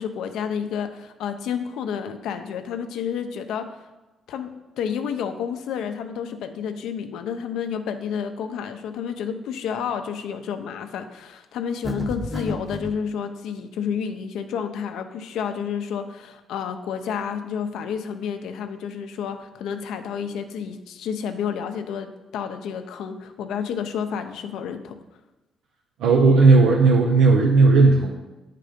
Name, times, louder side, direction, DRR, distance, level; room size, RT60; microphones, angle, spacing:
voice 1, 0.0-3.8 4.3-25.0, left 7 dB, 80° left, 7 dB, 0.6 m, -30 dB
sound 1, 11.8-13.0, equal, ahead, 0.9 m, -31 dB
voice 2, 26.0-28.1, right 3 dB, 85° right, 1 dB, 0.6 m, -15 dB
8.6 x 3.8 x 5.0 m, 1.1 s
cardioid pair, 90°, 0 cm